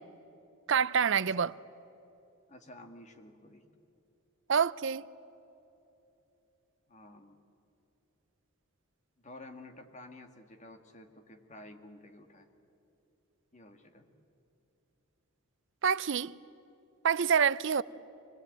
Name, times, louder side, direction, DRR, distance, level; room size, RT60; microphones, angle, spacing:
voice 1, 0.7-1.6 4.5-5.1 15.8-16.3 17.0-17.8, right 7 dB, 55° right, 0.5 m, -27 dB
voice 2, 2.5-3.7 6.9-7.4 9.2-12.5 13.5-14.1, left 1 dB, 30° left, 1.8 m, -51 dB
27.0 x 19.5 x 9.0 m
head